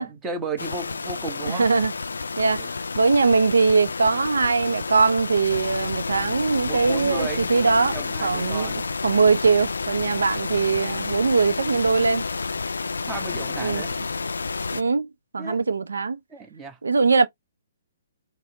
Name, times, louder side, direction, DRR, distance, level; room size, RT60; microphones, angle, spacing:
voice 1, 0.0-1.7 2.6-2.7 6.7-8.8 13.1-13.9 15.4-15.6 16.3-16.8, right 3 dB, 15° right, 1.0 m, -34 dB
sound 1, 0.6-14.8, left 4 dB, 80° left, 0.3 m, -30 dB
voice 2, 1.5-1.9 2.4-7.9 8.2-12.2 13.6-13.8 14.7-15.1 15.3-16.2 16.8-17.3, right 4 dB, 75° right, 0.5 m, -21 dB
4.2 x 2.1 x 2.8 m
figure-of-eight pair, 130°, 0 cm